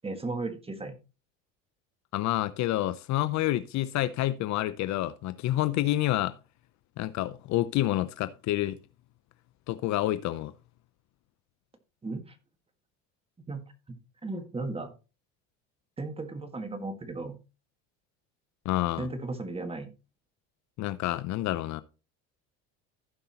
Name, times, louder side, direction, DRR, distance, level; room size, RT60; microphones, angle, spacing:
voice 1, 0.0-1.0 12.0-12.4 13.5-14.9 16.0-17.4 19.0-19.9, right 3 dB, 15° right, 1.7 m, -36 dB
voice 2, 2.1-6.4 7.0-8.8 9.7-10.5 18.6-19.1 20.8-21.8, left 15 dB, 50° left, 0.6 m, -28 dB
16.0 x 5.4 x 2.9 m
supercardioid pair, 105°, 36 cm